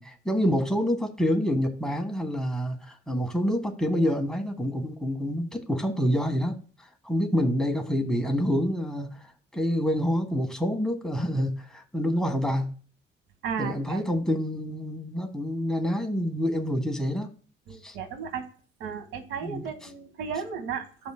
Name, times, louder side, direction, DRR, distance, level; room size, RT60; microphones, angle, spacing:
voice 1, 0.0-6.5 6.8-9.2 9.5-12.7 13.6-17.3 17.8-17.9 19.4-19.6, equal, 5° left, 3 dB, 1.6 m, -27 dB
voice 2, 13.4-14.0 17.7-18.4 18.8-21.1, right 6 dB, 90° right, 7 dB, 1.4 m, -34 dB
14.5 x 5.1 x 2.2 m, 0.41 s
cardioid pair, 90°, 20 cm